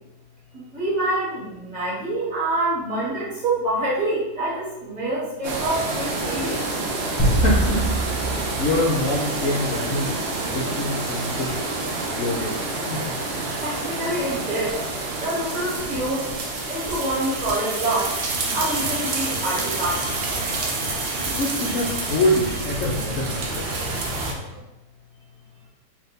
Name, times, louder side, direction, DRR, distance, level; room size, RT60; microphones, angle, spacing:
voice 1, 0.7-6.6 13.6-14.7 15.2-16.2 16.7-18.1 18.5-20.0, right 1 dB, 25° right, -8 dB, 1.5 m, -26 dB
sound 1, 5.4-24.3, right 2 dB, 70° right, 0.6 m, -28 dB
sound 2, 7.2-9.7, right 1 dB, 15° left, 0.6 m, -24 dB
voice 2, 7.3-8.0 8.2-10.1 10.5-11.6 11.9-12.6 12.9-13.2 21.3-23.5, left 1 dB, 70° left, -3 dB, 0.8 m, -25 dB
sound 3, 17.1-24.6, equal, 50° right, 1.4 m, -40 dB
3.6 x 2.6 x 3.9 m, 0.97 s
omnidirectional pair, 1.9 m